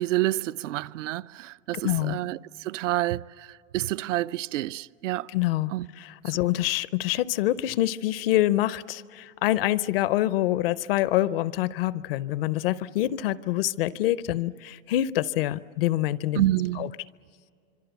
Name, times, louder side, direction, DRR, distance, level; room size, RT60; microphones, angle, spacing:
voice 1, 0.0-5.3 5.7-5.9 16.4-16.9, right 15 dB, 70° right, 0.5 m, -28 dB
voice 2, 1.8-2.2 5.3-5.7 6.0-16.4 16.8-16.9, left 14 dB, 50° left, 0.6 m, -26 dB
26.5 x 23.0 x 8.1 m
supercardioid pair, 155°, 38 cm